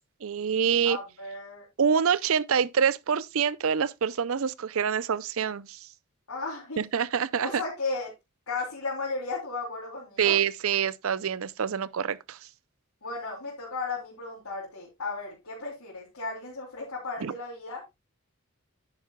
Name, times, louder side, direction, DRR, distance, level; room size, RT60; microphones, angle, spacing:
voice 1, 0.2-1.0 1.8-5.9 6.8-7.6 10.2-12.4 17.2-17.3, right 7 dB, 70° right, 0.5 m, -26 dB
voice 2, 0.8-1.6 6.3-6.8 7.4-8.1 8.5-10.4 13.0-18.0, left 3 dB, 80° left, 3.4 m, -35 dB
10.5 x 9.1 x 2.3 m
head